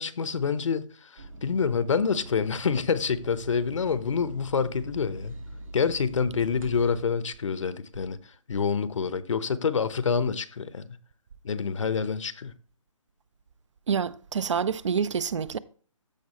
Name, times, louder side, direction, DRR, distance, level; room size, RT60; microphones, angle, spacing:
voice 1, 0.0-5.4 5.7-8.2 8.5-10.9 11.4-12.5, left 6 dB, 65° left, 0.8 m, -27 dB
sound 1, 1.2-7.0, right 1 dB, 75° right, 2.0 m, -42 dB
voice 2, 13.9-15.6, right 6 dB, 60° right, 0.5 m, -27 dB
14.0 x 4.7 x 3.0 m
hypercardioid pair, 155°, 17 cm